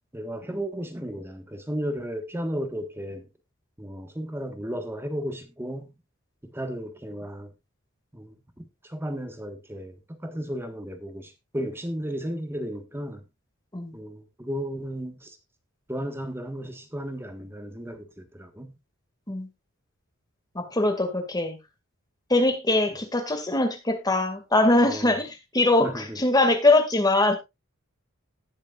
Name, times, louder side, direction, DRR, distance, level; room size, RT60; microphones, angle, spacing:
voice 1, 0.1-3.3 3.8-5.9 6.4-7.5 8.1-13.2 13.9-15.4 15.9-18.8 24.9-25.2 25.8-26.2, equal, 10° right, 1.5 m, -34 dB
voice 2, 20.5-21.6 22.3-27.4, left 2 dB, 20° left, 2.1 m, -22 dB
19.0 x 6.6 x 2.5 m
head